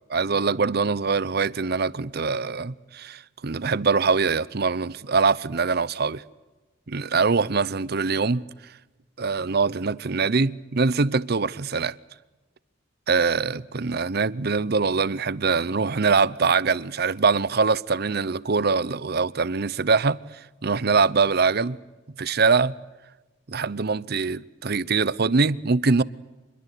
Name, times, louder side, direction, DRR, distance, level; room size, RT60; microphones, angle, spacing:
voice 1, 0.1-6.2 6.9-8.5 9.2-11.9 13.1-20.2 20.6-21.8 22.2-22.7 23.5-26.0, right 4 dB, 55° right, 0.8 m, -23 dB
26.5 x 22.5 x 8.4 m
head